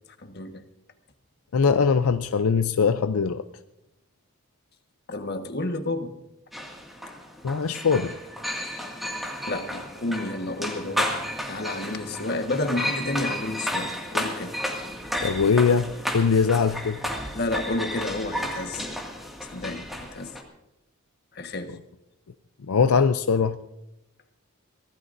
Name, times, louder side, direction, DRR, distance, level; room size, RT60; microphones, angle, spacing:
voice 1, 0.2-0.6 5.1-6.1 9.5-14.5 17.3-18.9 19.5-20.3 21.3-21.7, left 2 dB, 45° left, 6 dB, 1.4 m, -30 dB
voice 2, 1.5-3.4 7.4-8.1 15.2-17.0 22.7-23.6, left 5 dB, 80° left, 10 dB, 0.5 m, -21 dB
sound 1, 6.5-20.4, equal, ahead, 2.0 m, -32 dB
24.0 x 16.5 x 2.6 m, 0.89 s
head